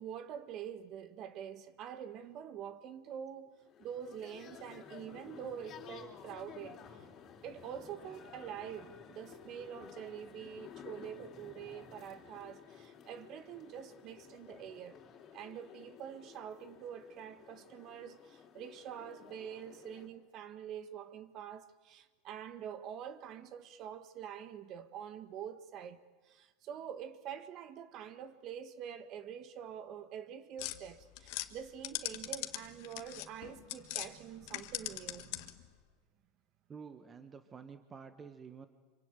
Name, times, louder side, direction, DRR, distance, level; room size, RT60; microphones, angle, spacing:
voice 1, 0.0-3.5 3.8-6.8 7.4-15.0 15.3-35.5, right 9 dB, 40° right, 1.6 m, -46 dB
sound 1, 3.6-20.1, left 7 dB, 35° left, 3.8 m, -54 dB
sound 2, 30.6-34.1 34.4-35.7, left 18 dB, 60° left, 1.6 m, -41 dB
voice 2, 36.7-38.7, right 6 dB, 20° right, 1.3 m, -50 dB
26.0 x 24.5 x 9.0 m
supercardioid pair, 135°, 0 cm